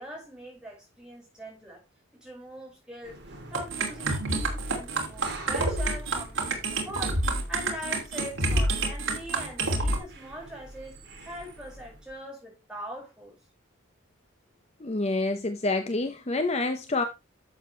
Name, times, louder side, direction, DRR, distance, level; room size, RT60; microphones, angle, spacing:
voice 1, 0.0-1.8 2.2-3.2 3.5-7.2 7.5-11.0 11.2-13.4, equal, 5° right, 5.6 m, -42 dB
sound 1, 3.0-12.2, right 2 dB, 55° right, 3.3 m, -48 dB
sound 2, 3.5-10.0, right 2 dB, 70° right, 2.8 m, -28 dB
voice 2, 14.8-17.0, left 2 dB, 30° left, 0.7 m, -27 dB
11.0 x 7.3 x 3.2 m
head